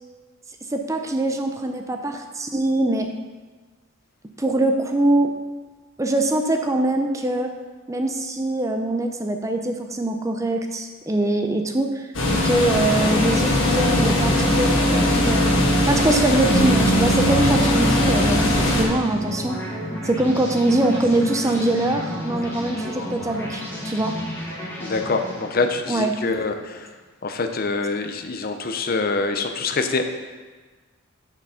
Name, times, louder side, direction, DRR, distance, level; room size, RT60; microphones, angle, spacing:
voice 1, 0.7-3.1 4.4-5.3 6.0-7.5 7.9-12.1 12.4-15.5 15.9-19.6 20.0-24.1 25.9-26.2, right 2 dB, 15° right, 4 dB, 0.5 m, -23 dB
sound 1, 12.1-18.8, left 1 dB, 70° left, 1.7 m, -19 dB
sound 2, 15.4-24.1, right 1 dB, 45° right, 1.9 m, -37 dB
sound 3, 17.3-26.4, left 1 dB, 10° left, 1.8 m, -33 dB
voice 2, 24.8-26.9 27.2-30.0, left 3 dB, 45° left, 6 dB, 0.6 m, -25 dB
6.7 x 6.0 x 5.5 m, 1.4 s
head